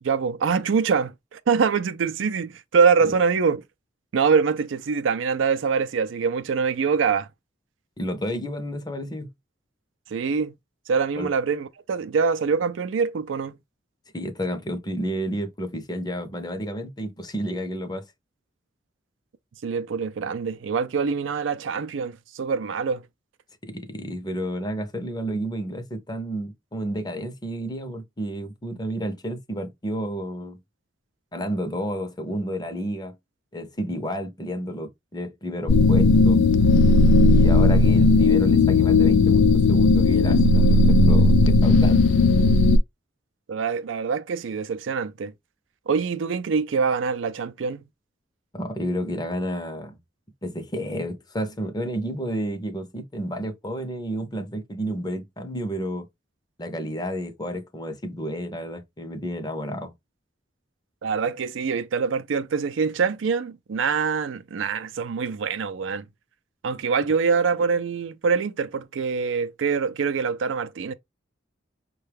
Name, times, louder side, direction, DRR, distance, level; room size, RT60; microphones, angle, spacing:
voice 1, 0.0-3.6 4.1-7.3 10.1-10.5 10.9-13.6 19.6-23.0 43.5-45.3 45.9-47.8 61.0-66.0 66.6-70.9, right 5 dB, 90° right, 0.4 m, -24 dB
voice 2, 8.0-9.3 11.1-11.3 14.1-18.0 23.6-30.6 31.3-33.1 33.5-36.4 37.3-42.0 48.5-50.0 50.4-56.1 56.6-59.9, equal, 20° left, 0.7 m, -31 dB
sound 1, 35.7-42.8, left 3 dB, 70° left, 0.3 m, -16 dB
5.4 x 2.3 x 3.3 m
head